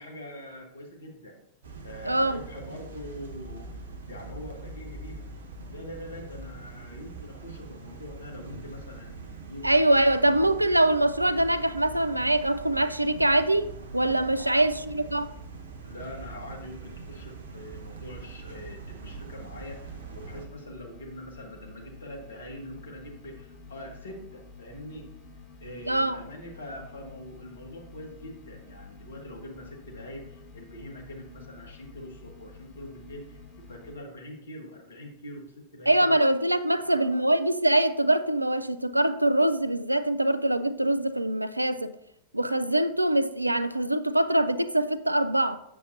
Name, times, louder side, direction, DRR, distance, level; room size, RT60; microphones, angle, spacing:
voice 1, 0.0-1.4 1.8-3.8 4.1-5.3 5.7-10.2 14.3-14.6 15.8-25.1 25.6-36.2 36.8-37.2, left 1 dB, 70° left, 1.4 m, -43 dB
sound 1, 1.6-20.5, right 3 dB, 65° right, 0.7 m, -43 dB
voice 2, 2.0-2.4 9.6-15.3 25.9-26.2 35.9-42.0 42.3-45.6, right 1 dB, 85° right, 0.3 m, -24 dB
sound 2, 19.1-34.0, left 3 dB, 40° left, 1.2 m, -49 dB
7.3 x 6.9 x 2.7 m
figure-of-eight pair, 90°, 0 cm